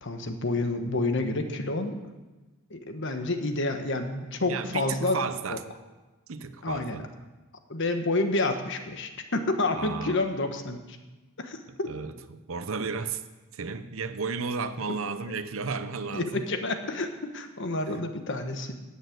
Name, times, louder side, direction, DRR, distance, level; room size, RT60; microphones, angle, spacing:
voice 1, 0.0-2.0 2.7-5.2 5.5-5.6 6.6-7.0 7.7-11.0 11.4-11.9 16.1-18.7, left 2 dB, 60° left, 7 dB, 1.2 m, -29 dB
voice 2, 4.5-5.6 6.3-7.1 9.8-10.3 11.7-13.2 13.5-16.5, right 4 dB, 70° right, 11 dB, 0.8 m, -33 dB
11.0 x 8.7 x 7.9 m, 1.2 s
head